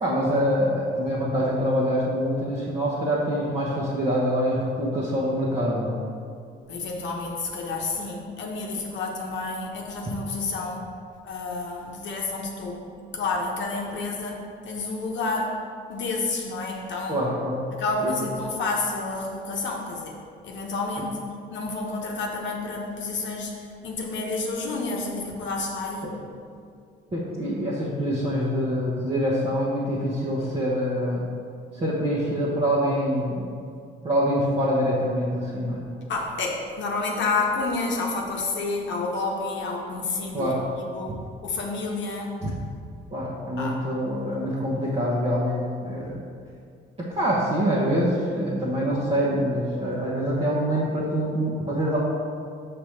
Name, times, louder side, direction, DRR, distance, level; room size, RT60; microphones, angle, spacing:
voice 1, 0.0-6.0 17.1-17.6 18.0-18.3 26.0-26.1 27.1-31.2 31.7-33.5 34.0-35.8 40.3-40.6 42.4-42.5 43.1-46.2 47.0-52.0, equal, 30° right, -8 dB, 1.2 m, -25 dB
voice 2, 6.7-10.8 11.2-14.3 14.6-15.5 15.9-17.2 17.7-20.1 20.4-21.2 21.5-26.1 36.1-41.1 41.4-42.3 43.6-43.8 44.3-44.4, left 3 dB, 70° left, -1 dB, 0.9 m, -29 dB
5.9 x 3.4 x 5.9 m, 2.3 s
cardioid pair, 90°, 20 cm